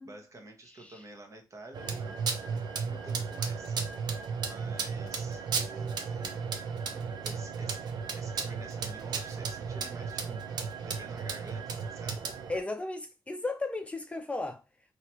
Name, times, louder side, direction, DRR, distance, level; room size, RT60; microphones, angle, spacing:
voice 1, 0.0-3.7 4.4-6.5 6.9-7.8 8.1-12.3, right 2 dB, 45° right, 1.2 m, -50 dB
sound 1, 1.7-12.6, right 5 dB, 80° right, 0.7 m, -34 dB
voice 2, 12.5-14.6, left 2 dB, 20° left, 0.5 m, -35 dB
3.1 x 2.9 x 4.3 m
cardioid pair, 95°, 7 cm